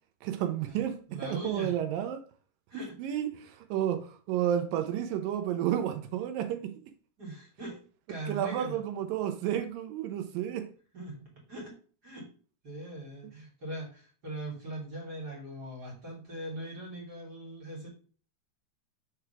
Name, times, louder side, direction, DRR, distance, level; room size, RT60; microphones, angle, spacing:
voice 1, 0.2-2.2 3.0-6.7 8.3-10.7, right 10 dB, 80° right, 2.0 m, -31 dB
voice 2, 1.1-1.7 2.7-3.0 7.2-7.8 8.1-8.8 10.9-11.7 12.0-12.3 12.6-17.9, right 1 dB, 25° right, 2.6 m, -40 dB
6.1 x 5.0 x 5.9 m
omnidirectional pair, 5.0 m